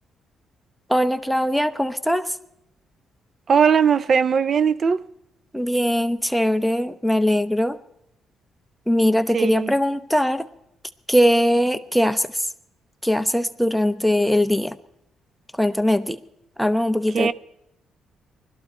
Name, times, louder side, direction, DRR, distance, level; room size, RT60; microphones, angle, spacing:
voice 1, 0.9-2.3 5.5-7.8 8.9-10.5 11.1-12.3 13.0-14.8 15.6-16.2 16.6-17.3, equal, ahead, 0.8 m, -21 dB
voice 2, 3.5-5.0 9.3-9.7 17.1-17.3, right 6 dB, 50° right, 0.5 m, -19 dB
20.5 x 13.0 x 4.3 m
cardioid pair, 90°, 0 cm